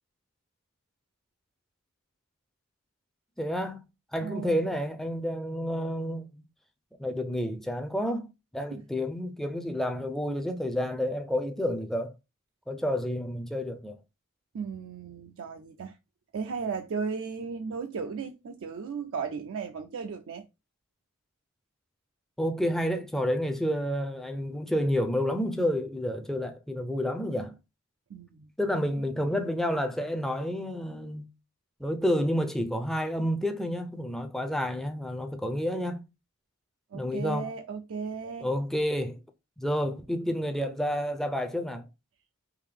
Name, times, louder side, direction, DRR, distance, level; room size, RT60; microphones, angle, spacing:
voice 1, 3.4-3.8 4.1-6.4 7.0-12.1 12.7-14.0 22.4-27.6 28.6-31.3 31.8-36.0 36.9-37.5 38.4-39.2 39.6-41.9, equal, ahead, 0.4 m, -30 dB
voice 2, 4.2-4.7 8.7-8.8 14.5-16.0 16.3-20.5 28.1-28.5 36.9-38.5, right 5 dB, 65° right, 0.4 m, -35 dB
3.7 x 2.6 x 3.3 m
head